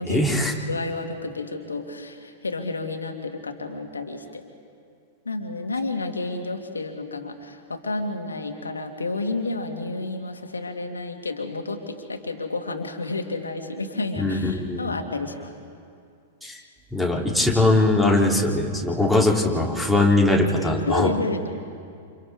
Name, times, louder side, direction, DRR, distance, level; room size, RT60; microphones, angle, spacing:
voice 1, 0.1-0.5 14.2-14.9 16.4-16.6 16.9-21.1, left 2 dB, ahead, -3 dB, 3.3 m, -21 dB
voice 2, 0.7-4.4 5.3-15.5 20.6-21.5, left 3 dB, 85° left, 4 dB, 2.2 m, -30 dB
29.0 x 28.0 x 3.7 m, 2.3 s
figure-of-eight pair, 100°, 0 cm